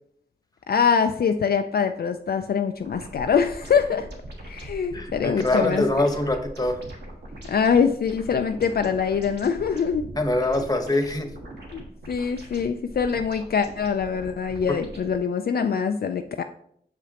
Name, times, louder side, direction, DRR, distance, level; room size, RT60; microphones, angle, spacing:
voice 1, 0.7-4.1 4.4-5.8 7.5-10.1 11.7-16.4, left 6 dB, 60° left, 7 dB, 0.4 m, -24 dB
sound 1, 2.8-15.2, right 1 dB, 75° right, 1.4 m, -41 dB
voice 2, 4.9-6.8 10.2-11.3 14.7-14.8, left 2 dB, 20° left, 5 dB, 1.1 m, -24 dB
6.7 x 5.0 x 2.9 m, 0.69 s
cardioid pair, 45°, 18 cm